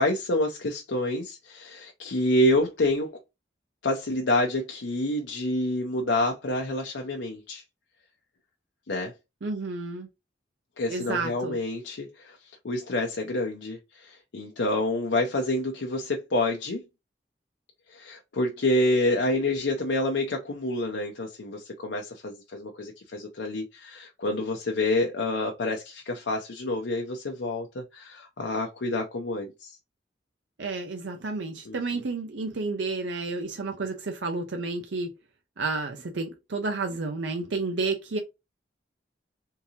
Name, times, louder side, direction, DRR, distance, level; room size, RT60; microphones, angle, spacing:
voice 1, 0.0-3.2 3.8-7.6 8.9-9.1 10.8-16.8 17.9-29.8 31.6-32.0, left 1 dB, 90° left, 0.6 m, -28 dB
voice 2, 9.4-10.1 10.9-11.6 30.6-35.1 35.6-38.2, right 3 dB, 85° right, 0.6 m, -31 dB
3.7 x 2.7 x 2.8 m
head